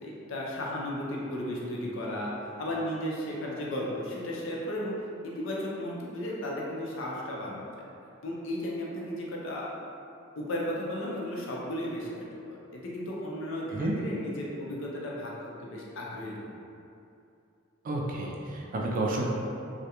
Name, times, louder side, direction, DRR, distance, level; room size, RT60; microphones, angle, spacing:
voice 1, 0.0-2.3 2.6-5.0 5.2-7.7 8.2-9.7 10.4-15.3 15.6-16.5, left 1 dB, 70° left, -4 dB, 0.5 m, -34 dB
voice 2, 17.8-19.3, right 2 dB, 45° right, -2 dB, 0.3 m, -30 dB
2.3 x 2.1 x 2.8 m, 2.6 s
head